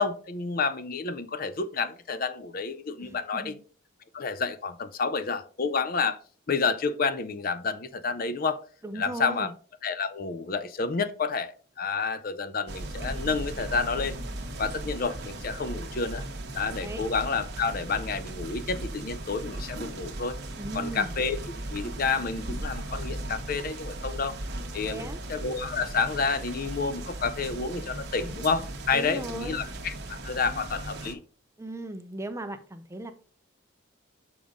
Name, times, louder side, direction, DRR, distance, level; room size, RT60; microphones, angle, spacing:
voice 1, 0.0-3.6 4.1-6.2 6.5-8.6 9.0-9.5 9.8-14.2 14.6-16.2 16.5-20.4 20.7-21.4 21.7-24.3 24.7-31.2, left 4 dB, 45° left, 12 dB, 0.5 m, -29 dB
voice 2, 3.0-3.6 8.8-9.5 16.8-17.0 20.6-21.1 24.9-25.2 28.9-29.6 31.6-33.1, right 1 dB, 15° right, 8 dB, 0.5 m, -37 dB
sound 1, 12.7-31.1, right 1 dB, 50° right, 1.1 m, -37 dB
7.0 x 5.0 x 3.7 m, 0.41 s
head